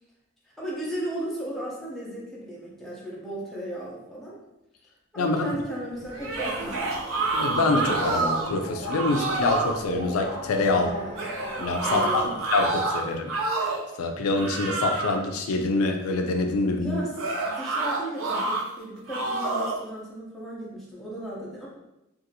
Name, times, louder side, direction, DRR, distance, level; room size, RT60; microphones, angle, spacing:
voice 1, 0.6-4.3 5.1-6.8 10.7-11.3 11.8-12.3 16.8-21.7, right 1 dB, ahead, -6 dB, 0.6 m, -35 dB
voice 2, 5.2-5.6 7.3-10.9 11.6-13.3 13.6-17.0, left 3 dB, 85° left, 4 dB, 0.4 m, -26 dB
Subway metro underground, 5.9-12.7, equal, 85° right, 1.3 m, -37 dB
sound 1, 6.1-8.5 8.9-9.8 11.2-13.9 14.3-15.3 17.2-18.6 19.1-19.8, right 3 dB, 65° right, 0.5 m, -28 dB
2.7 x 2.4 x 2.6 m, 0.90 s
head